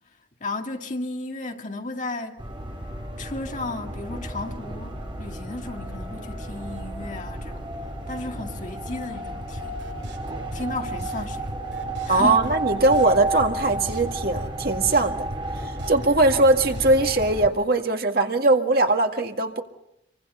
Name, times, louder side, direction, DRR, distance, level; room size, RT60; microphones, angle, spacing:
voice 1, 0.4-2.5 3.2-7.8 8.1-9.8 10.5-11.5 12.0-12.4, left 2 dB, 45° left, 2.1 m, -34 dB
sound 1, 2.4-17.5, right 1 dB, 30° right, 4.0 m, -32 dB
sound 2, 9.6-17.1, equal, 85° right, 7.0 m, -40 dB
voice 2, 12.1-15.3 15.6-19.6, right 2 dB, 55° right, 1.9 m, -20 dB
28.0 x 24.0 x 5.6 m
head